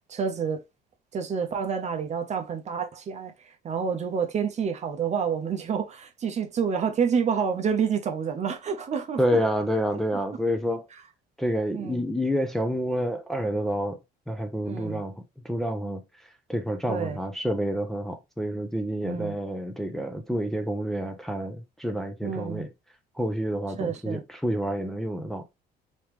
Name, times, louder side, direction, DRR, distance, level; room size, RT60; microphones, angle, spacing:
voice 1, 0.1-0.6 1.1-9.2 9.9-10.0 11.7-12.1 14.6-15.0 16.9-17.2 19.0-19.4 22.2-22.7 23.7-24.2, right 6 dB, 40° right, 0.8 m, -28 dB
voice 2, 9.2-10.9 11.4-14.0 14.3-16.0 16.5-22.7 23.2-25.4, equal, ahead, 0.7 m, -28 dB
3.5 x 3.1 x 3.0 m
cardioid pair, 110°, 17 cm